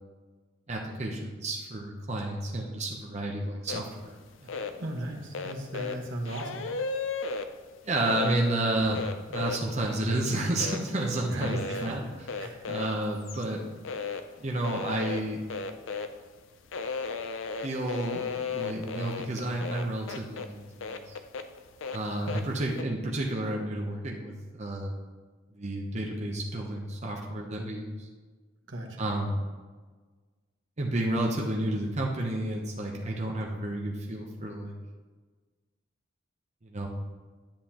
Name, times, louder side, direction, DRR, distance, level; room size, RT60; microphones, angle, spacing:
voice 1, 0.7-4.8 7.8-12.0 12.6-13.6 14.4-15.4 17.6-21.2 21.9-24.9 25.5-28.1 29.0-29.4 30.8-34.8 36.6-36.9, right 1 dB, 35° right, -1 dB, 0.8 m, -31 dB
sound 1, 3.7-3.8 4.3-4.7 5.3-7.5 8.0-8.3 8.8-10.2 10.5-10.9 11.4-11.9 12.3-13.4 13.8-14.2 14.5-16.2 16.5-20.5 20.8-22.4 22.7-22.8, left 4 dB, 80° left, 0.5 m, -34 dB
voice 2, 4.8-6.7 11.3-12.0 12.4-12.6 28.7-29.1, right 1 dB, 70° right, 0 dB, 1.4 m, -36 dB
10.5 x 7.4 x 2.9 m, 1.4 s
head